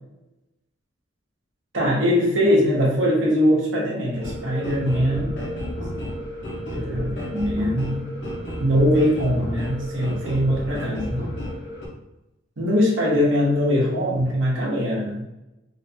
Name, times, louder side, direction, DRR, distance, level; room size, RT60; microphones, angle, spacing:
voice 1, 1.7-5.4 6.7-8.0 8.6-11.2 12.6-15.2, equal, 75° right, -3 dB, 1.1 m, -21 dB
sound 1, 4.2-11.9, equal, 65° left, 1.1 m, -32 dB
3.3 x 2.9 x 2.8 m, 0.94 s
head